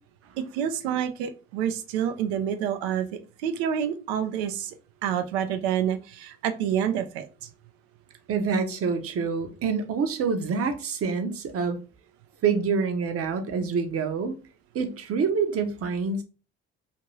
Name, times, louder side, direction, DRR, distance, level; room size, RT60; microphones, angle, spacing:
voice 1, 0.4-3.1 3.4-4.7 5.0-7.5, right 9 dB, 85° right, 0.5 m, -28 dB
voice 2, 8.3-11.8 12.4-14.4 14.7-16.2, right 5 dB, 50° right, 0.7 m, -26 dB
2.6 x 2.6 x 3.0 m
hypercardioid pair, 55°, 31 cm